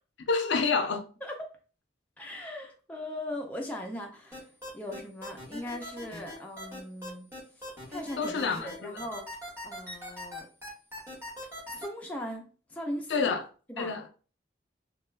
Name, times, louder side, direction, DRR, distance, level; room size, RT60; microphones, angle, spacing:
voice 1, 0.3-1.1 8.2-9.0 13.1-13.4 13.8-14.1, left 4 dB, 70° left, 0.4 m, -28 dB
voice 2, 2.2-4.5 4.7-7.3 7.6-9.2 9.6-10.5 11.7-12.4 12.7-13.3 13.7-13.9, left 1 dB, 10° left, 0.4 m, -39 dB
sound 1, 4.3-11.9, left 1 dB, 15° right, 1.0 m, -41 dB
2.2 x 2.2 x 3.2 m
head